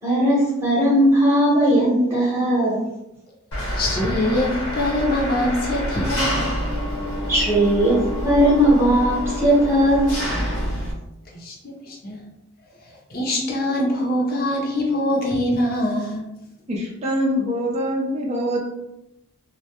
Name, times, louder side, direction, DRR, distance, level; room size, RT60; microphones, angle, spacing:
voice 1, 0.0-2.8 7.3-10.1, equal, 10° right, -8 dB, 0.9 m, -18 dB
Engine, 3.5-10.9, equal, 90° left, 1.0 m, -27 dB
voice 2, 3.8-6.4 11.4-12.2 13.1-16.3, left 1 dB, 45° left, -2 dB, 0.6 m, -23 dB
voice 3, 16.7-18.6, equal, 30° right, -2 dB, 0.4 m, -24 dB
2.2 x 2.1 x 2.8 m, 0.89 s
head